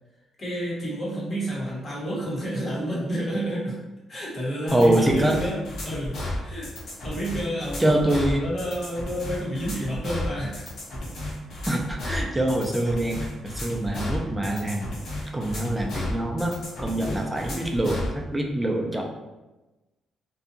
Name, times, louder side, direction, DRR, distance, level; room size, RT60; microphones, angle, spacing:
voice 1, 0.4-3.8 4.1-6.7 7.0-8.0 8.3-10.7, equal, 40° left, -5 dB, 1.0 m, -30 dB
sound 1, 4.7-18.1, left 1 dB, 70° left, 0.9 m, -33 dB
voice 2, 4.7-5.4 7.8-8.4 11.7-14.9 15.3-19.0, right 1 dB, 10° right, 1 dB, 0.4 m, -24 dB
2.6 x 2.3 x 2.6 m, 1.1 s
cardioid pair, 90°, 0 cm